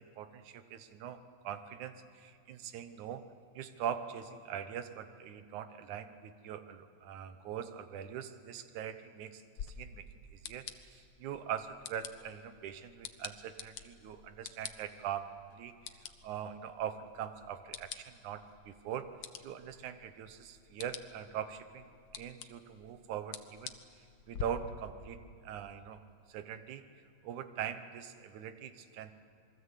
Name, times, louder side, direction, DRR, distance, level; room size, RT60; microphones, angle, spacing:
voice 1, 0.0-3.2 3.6-16.0 16.2-19.1 19.4-23.8 24.3-26.0 26.3-26.8 27.2-29.1, right 9 dB, 85° right, 10 dB, 2.5 m, -42 dB
sound 1, 9.6-24.4, left 8 dB, 70° left, 1.1 m, -49 dB
27.0 x 22.0 x 8.3 m, 2.3 s
omnidirectional pair, 3.4 m